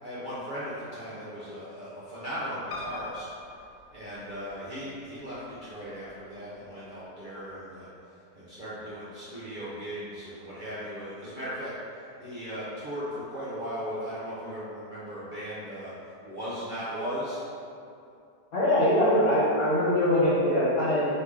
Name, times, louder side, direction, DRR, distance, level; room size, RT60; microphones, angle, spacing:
voice 1, 0.0-3.3 3.9-7.9 8.3-15.9 16.2-17.4, equal, 65° right, -10 dB, 0.5 m, -37 dB
Piano, 2.7-4.7 5.3-6.0 6.3-6.4 6.6-6.7, left 3 dB, 80° left, 1.2 m, -42 dB
voice 2, 18.5-21.1, left 1 dB, 60° left, -9 dB, 1.6 m, -23 dB
3.8 x 3.2 x 3.5 m, 2.6 s
omnidirectional pair, 1.8 m